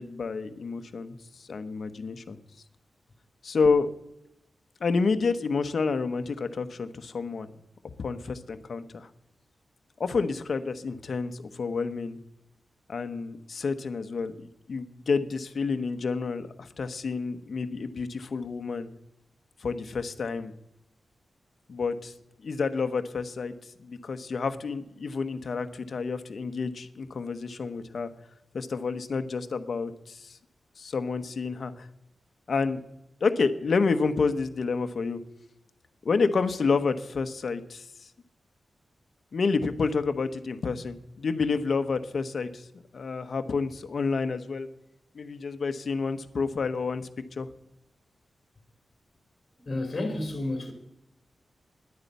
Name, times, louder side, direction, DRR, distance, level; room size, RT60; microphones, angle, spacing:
voice 1, 0.0-2.4 3.4-3.9 4.8-7.5 8.0-9.1 10.0-12.2 12.9-18.9 19.6-20.5 21.7-22.1 22.4-23.5 23.8-28.1 28.5-30.4 30.8-31.9 32.5-32.8 33.2-35.2 36.0-38.1 39.3-42.7 42.9-44.7 45.1-47.1 47.4-47.5, left 4 dB, 60° left, 0.9 m, -29 dB
voice 2, 49.6-50.7, left 2 dB, 35° left, 2.8 m, -31 dB
10.5 x 9.6 x 8.1 m
wide cardioid pair, 120°, 0 cm